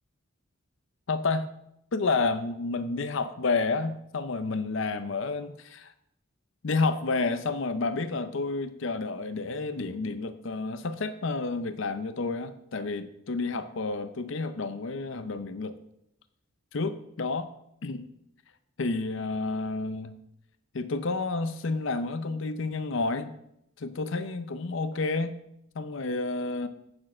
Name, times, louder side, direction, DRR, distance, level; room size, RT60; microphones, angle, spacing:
voice 1, 1.1-1.5 1.9-5.9 6.6-15.8 16.7-17.5 17.8-18.1 18.8-20.2 20.7-23.3 23.8-25.4 25.8-26.7, left 3 dB, 60° left, 11 dB, 0.6 m, -30 dB
8.8 x 6.3 x 6.2 m, 0.78 s
head